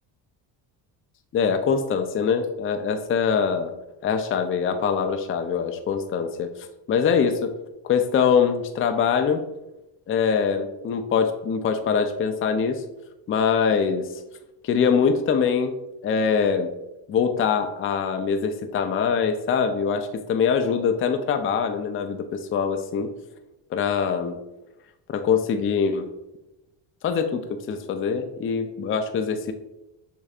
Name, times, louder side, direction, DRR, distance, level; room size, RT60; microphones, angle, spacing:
voice 1, 1.3-3.7 4.0-7.5 7.8-9.4 10.1-12.8 13.3-14.1 14.6-15.7 16.0-16.7 17.1-23.1 23.7-24.4 25.1-26.1 27.0-29.5, left 6 dB, 30° left, 7 dB, 0.4 m, -23 dB
6.6 x 2.6 x 2.4 m, 0.92 s
supercardioid pair, 85°, 45 cm